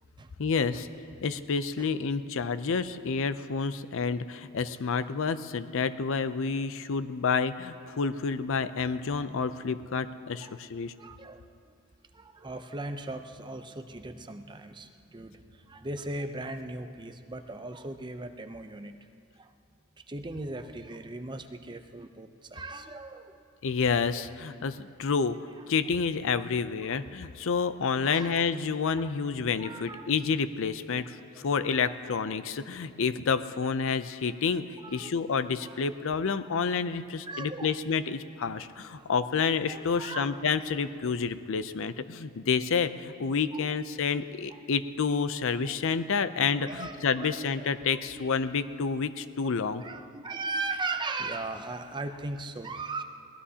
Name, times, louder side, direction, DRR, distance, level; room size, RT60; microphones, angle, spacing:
voice 1, 0.4-0.9 1.2-10.9 23.6-25.4 25.7-49.8, left 5 dB, 60° left, 13 dB, 0.5 m, -29 dB
voice 2, 11.0-11.7 12.1-18.9 19.4-19.5 20.1-23.4 26.9-27.0 28.0-28.4 29.6-30.1 31.2-31.5 32.7-32.8 34.8-35.2 35.6-35.8 37.3-37.8 38.9-39.1 39.7-40.4 43.5-43.8 44.5-44.6 45.6-45.8 46.6-48.3 49.4-49.5 49.8-53.0, right 2 dB, 20° right, 7 dB, 0.6 m, -38 dB
22.5 x 18.0 x 2.8 m, 2.6 s
head